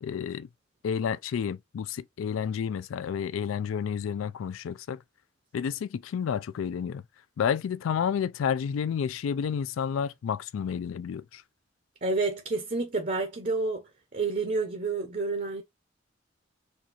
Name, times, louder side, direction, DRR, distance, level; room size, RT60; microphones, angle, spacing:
voice 1, 0.0-0.5 0.8-5.0 5.5-7.0 7.4-11.4, left 7 dB, 90° left, 0.3 m, -30 dB
voice 2, 12.0-13.8 14.1-15.6, right 3 dB, 40° right, 0.6 m, -29 dB
4.2 x 2.4 x 2.8 m
head